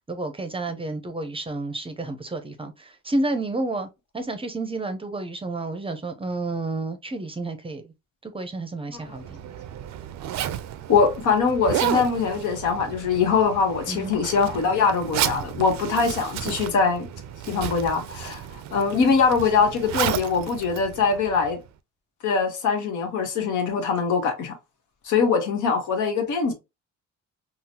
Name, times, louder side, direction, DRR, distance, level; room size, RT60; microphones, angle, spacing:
voice 1, 0.1-3.9 4.1-7.9 8.2-9.4 13.9-14.1, right 2 dB, 20° right, 0.5 m, -30 dB
Zipper (clothing), 9.0-21.7, right 11 dB, 65° right, 0.4 m, -32 dB
voice 2, 10.9-17.1 17.5-18.4 18.7-21.6 22.2-24.5 25.0-26.5, left 5 dB, 80° left, 1.0 m, -22 dB
3.8 x 2.0 x 2.7 m
cardioid pair, 90°, 30 cm